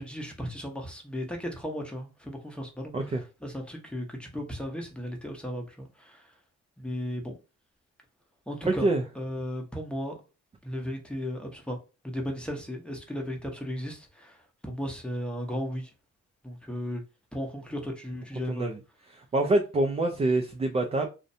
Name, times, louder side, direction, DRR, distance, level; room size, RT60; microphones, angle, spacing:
voice 1, 0.0-2.9 3.4-6.2 6.8-7.3 8.5-8.9 9.2-10.2 10.6-11.8 12.0-14.4 14.6-15.9 16.4-17.0 17.3-18.7, equal, 5° left, 0.7 m, -35 dB
voice 2, 8.6-9.0 18.5-18.8 19.1-21.1, right 2 dB, 20° right, 0.3 m, -26 dB
2.5 x 2.1 x 2.6 m
cardioid pair, 90°, 30 cm